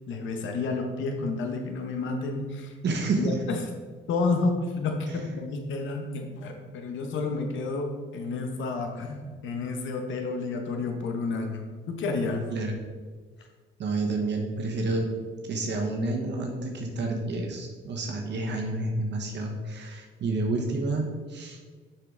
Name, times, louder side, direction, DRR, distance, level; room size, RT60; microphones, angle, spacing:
voice 1, 0.1-2.7 3.1-3.6 4.1-12.5, left 3 dB, 75° left, 4 dB, 1.0 m, -30 dB
voice 2, 2.8-3.4 5.1-5.2 12.5-12.8 13.8-15.1 15.4-21.6, right 2 dB, 60° right, 1 dB, 1.2 m, -29 dB
6.6 x 5.7 x 3.8 m, 1.5 s
cardioid pair, 90°, 20 cm